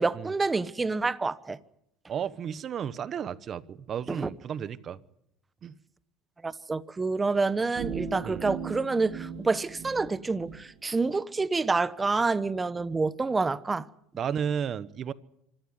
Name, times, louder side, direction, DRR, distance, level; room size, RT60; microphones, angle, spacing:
voice 1, 0.0-1.6 4.1-4.3 6.4-13.9, right 3 dB, 15° right, 1.0 m, -28 dB
voice 2, 2.1-5.0 5.6-5.8 8.2-8.4 14.2-15.1, right 8 dB, 40° right, 1.0 m, -33 dB
sound 1, 7.8-10.6, right 7 dB, 60° right, 2.7 m, -38 dB
25.5 x 13.5 x 9.6 m
supercardioid pair, 110°, 0 cm